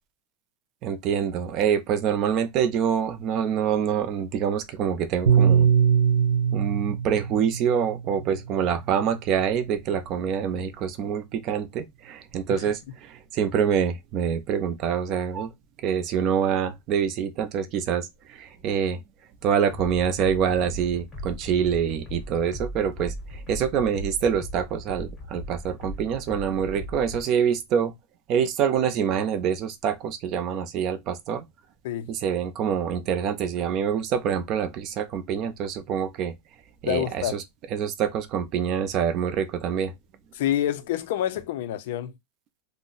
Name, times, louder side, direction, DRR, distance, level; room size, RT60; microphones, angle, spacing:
voice 1, 0.8-5.7 6.5-15.5 15.8-19.0 19.4-27.9 28.3-31.5 32.1-36.3 36.8-37.4 37.7-39.9, right 8 dB, 30° right, 0.4 m, -26 dB
Piano, 5.3-9.7, right 7 dB, 80° right, 1.0 m, -23 dB
sound 1, 19.7-27.2, left 1 dB, 15° left, 0.8 m, -38 dB
voice 2, 36.8-37.4 40.3-42.1, left 11 dB, 60° left, 0.4 m, -27 dB
2.5 x 2.0 x 3.8 m
supercardioid pair, 175°, 0 cm